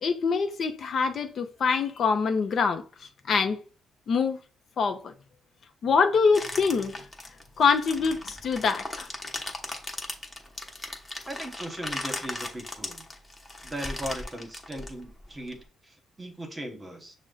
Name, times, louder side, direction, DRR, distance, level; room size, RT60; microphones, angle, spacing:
voice 1, 0.0-3.6 4.1-4.4 4.8-5.1 5.8-6.9 7.6-9.1, left 5 dB, 55° left, 0.6 m, -25 dB
sound 1, 6.3-15.5, left 2 dB, 20° left, 1.0 m, -38 dB
voice 2, 11.3-13.0 13.6-17.1, equal, 20° right, 1.1 m, -38 dB
6.0 x 2.1 x 3.8 m
cardioid pair, 90°, 0 cm